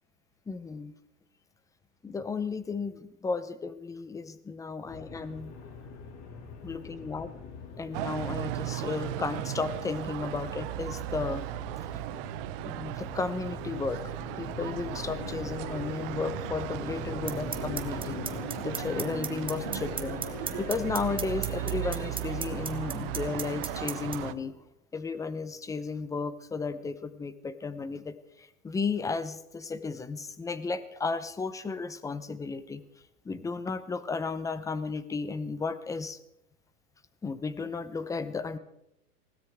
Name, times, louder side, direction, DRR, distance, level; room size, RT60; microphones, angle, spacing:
voice 1, 0.5-0.9 2.0-5.5 6.6-7.3 7.8-11.4 11.9-12.0 12.6-14.0 14.4-18.2 18.6-20.2 20.6-24.6 24.9-32.8 33.2-36.2 37.2-38.6, left 4 dB, 5° left, 14 dB, 0.7 m, -34 dB
sound 1, 4.9-24.3, left 5 dB, 35° left, 2.7 m, -43 dB
sound 2, 7.9-24.3, right 17 dB, 40° right, 0.6 m, -36 dB
sound 3, 17.3-24.2, right 6 dB, 10° right, 1.1 m, -33 dB
20.0 x 16.5 x 3.6 m, 0.83 s
hypercardioid pair, 125°, 45 cm